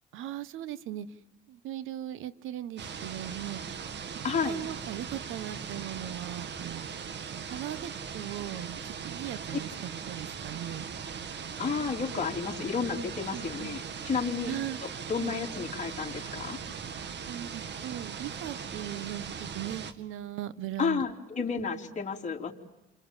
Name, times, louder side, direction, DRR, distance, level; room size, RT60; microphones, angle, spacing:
voice 1, 0.1-1.1 1.5-3.6 4.4-6.9 7.5-10.9 13.3-13.7 14.4-14.8 15.2-15.3 17.3-19.2 19.5-21.6, right 12 dB, 90° right, 15 dB, 1.3 m, -39 dB
sound 1, 2.8-19.9, right 7 dB, 60° right, 2.1 m, -39 dB
voice 2, 4.2-4.6 11.6-14.5 15.1-16.6 20.8-22.5, left 5 dB, 35° left, 0 dB, 3.8 m, -31 dB
29.0 x 27.0 x 7.4 m, 0.97 s
cardioid pair, 90°, 20 cm